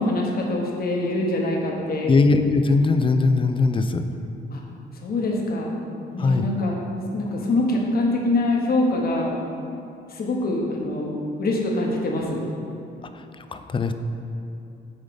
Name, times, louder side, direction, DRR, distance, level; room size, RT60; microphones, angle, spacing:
voice 1, 0.0-2.1 4.5-4.6 5.0-5.7 6.1-6.8 7.1-9.3 10.1-12.4, left 2 dB, 50° left, -1 dB, 1.2 m, -24 dB
voice 2, 2.1-4.0 6.2-6.5 13.4-13.9, left 3 dB, 25° left, 8 dB, 0.4 m, -20 dB
7.3 x 3.7 x 5.3 m, 2.7 s
cardioid pair, 90°, 20 cm